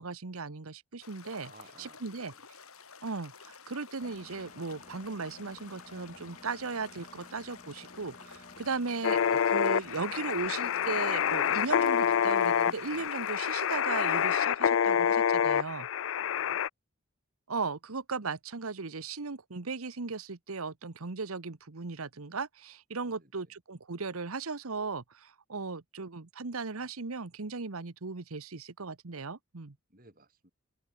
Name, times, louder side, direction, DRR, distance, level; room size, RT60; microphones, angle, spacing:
voice 1, 0.0-1.5 1.8-2.3 3.0-15.9 17.5-29.8, right 4 dB, 90° right, 1.1 m, -37 dB
sound 1, 1.0-14.4, left 5 dB, 90° left, 7.4 m, -52 dB
voice 2, 1.4-2.4 16.2-16.6 23.0-23.5 29.9-30.5, right 2 dB, 40° right, 6.9 m, -58 dB
Engine, 4.0-13.1, left 2 dB, 35° left, 1.6 m, -54 dB
sound 2, 9.0-16.7, left 8 dB, 65° left, 0.4 m, -27 dB
open air
head